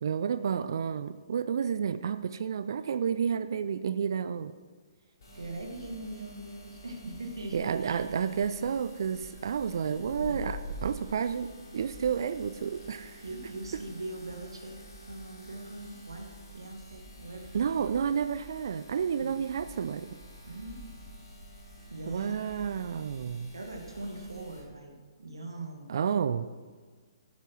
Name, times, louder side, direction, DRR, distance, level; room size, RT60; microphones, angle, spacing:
voice 1, 0.0-4.5 7.5-13.2 17.5-20.1 22.1-23.5 25.9-26.5, right 7 dB, 50° right, 13 dB, 0.5 m, -30 dB
voice 2, 5.0-8.8 9.7-10.4 13.2-14.8 15.1-17.8 19.2-19.5 20.5-20.8 21.9-22.4 23.5-25.9, right 2 dB, 65° right, 3 dB, 2.0 m, -42 dB
sound 1, 5.2-24.6, equal, 50° left, 4.3 m, -47 dB
12.0 x 8.3 x 6.2 m, 1.5 s
figure-of-eight pair, 125°, 3 cm